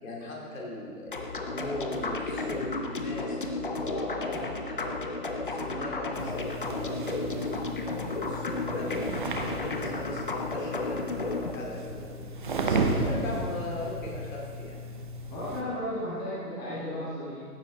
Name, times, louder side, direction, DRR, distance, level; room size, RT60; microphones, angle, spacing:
voice 1, 0.0-4.9 5.3-7.0 7.2-9.1 9.5-12.3 12.6-14.8, left 2 dB, 60° left, -2 dB, 2.9 m, -38 dB
sound 1, 1.1-11.6, left 3 dB, 35° left, 0.5 m, -33 dB
sound 2, 6.1-15.6, right 2 dB, 35° right, 0.6 m, -34 dB
voice 2, 15.3-17.4, equal, 10° left, -10 dB, 1.5 m, -34 dB
15.0 x 7.3 x 3.9 m, 2.1 s
hypercardioid pair, 160°, 46 cm